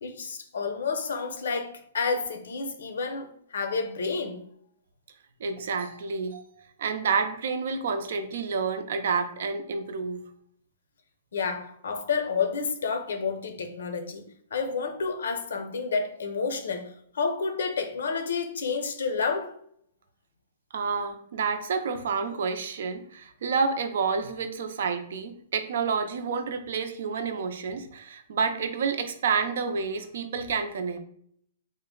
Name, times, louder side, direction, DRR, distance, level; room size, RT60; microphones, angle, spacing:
voice 1, 0.0-4.4 11.3-14.3 14.5-19.5, left 5 dB, 80° left, 0.7 m, -30 dB
voice 2, 5.4-6.4 6.8-10.2 20.7-31.0, right 5 dB, 65° right, 0.5 m, -29 dB
3.6 x 2.1 x 3.8 m
hypercardioid pair, 165°, 0 cm